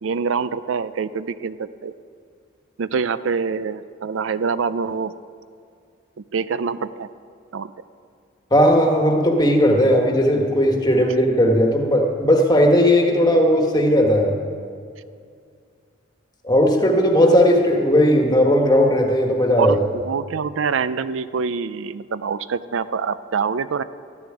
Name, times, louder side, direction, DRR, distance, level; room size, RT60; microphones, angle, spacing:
voice 1, 0.0-1.9 2.8-5.1 6.2-7.1 7.5-7.7 19.6-23.8, right 5 dB, 75° right, 15 dB, 0.4 m, -25 dB
voice 2, 8.5-14.4 16.4-19.7, equal, 20° left, 2 dB, 1.4 m, -17 dB
14.0 x 7.1 x 9.8 m, 2.2 s
head